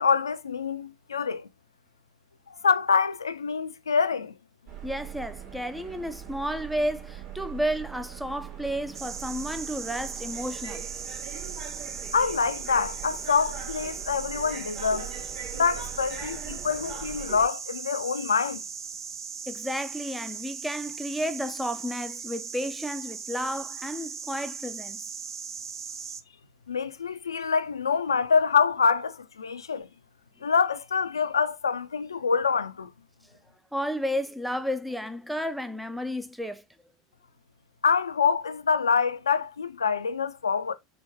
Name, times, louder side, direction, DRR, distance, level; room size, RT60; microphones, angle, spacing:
voice 1, 0.0-1.5 2.5-4.3 12.1-15.2 15.5-18.6 26.7-29.9 30.4-32.9 37.8-40.7, left 5 dB, 90° left, 0.4 m, -26 dB
sound 1, 4.7-17.5, right 9 dB, 45° right, 2.3 m, -41 dB
voice 2, 4.8-10.9 19.5-25.0 33.7-36.6, equal, ahead, 0.4 m, -32 dB
sound 2, 8.9-26.2, right 6 dB, 85° right, 0.3 m, -38 dB
4.6 x 2.2 x 3.3 m
hypercardioid pair, 90°, 2 cm